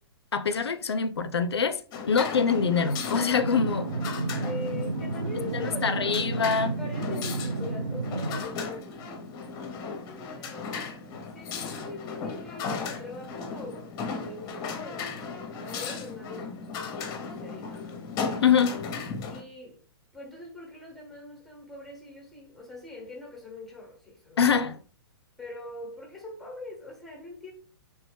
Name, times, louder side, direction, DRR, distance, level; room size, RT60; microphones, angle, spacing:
voice 1, 0.3-1.8 2.1-3.9 5.5-6.8 18.4-18.8 24.4-24.8, left 6 dB, 85° left, 0.4 m, -24 dB
sound 1, 1.9-19.4, left 5 dB, 30° left, 0.8 m, -36 dB
sound 2, 2.4-15.2, right 6 dB, 25° right, 0.9 m, -48 dB
sound 3, 3.4-8.4, right 3 dB, 85° right, 0.4 m, -32 dB
voice 2, 4.4-6.3 6.8-9.2 9.7-10.9 11.3-18.4 19.2-19.8 20.1-24.7 25.4-27.5, left 2 dB, ahead, 1.1 m, -43 dB
3.2 x 3.0 x 3.2 m
hypercardioid pair, 120°, 13 cm